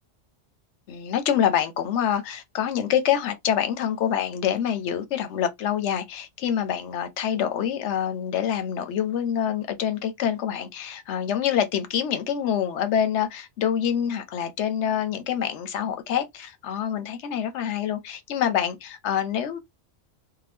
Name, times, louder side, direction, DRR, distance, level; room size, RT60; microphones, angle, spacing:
voice 1, 0.9-19.6, left 9 dB, 80° left, 0.9 m, -26 dB
2.8 x 2.1 x 3.3 m
omnidirectional pair, 1.2 m